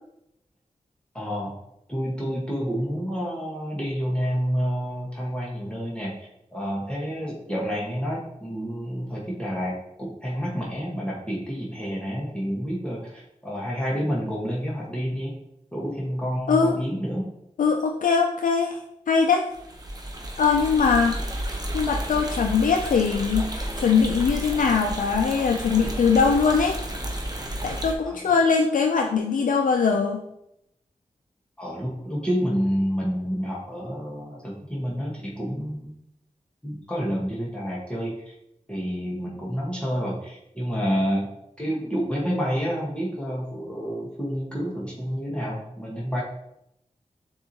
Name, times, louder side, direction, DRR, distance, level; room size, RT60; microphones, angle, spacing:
voice 1, 1.1-1.5 1.9-15.4 15.7-17.2 28.1-28.3 31.6-35.9 36.6-38.3 38.7-41.3 41.6-46.2, equal, 5° left, -5 dB, 1.3 m, -29 dB
voice 2, 17.6-18.8 19.1-19.5 20.4-21.2 21.7-23.5 23.8-26.8 27.6-30.2, left 5 dB, 75° left, 3 dB, 0.4 m, -21 dB
sound 1, 19.5-27.9, right 1 dB, 30° right, 0.9 m, -32 dB
6.8 x 2.7 x 2.9 m, 0.81 s
cardioid pair, 40°, 14 cm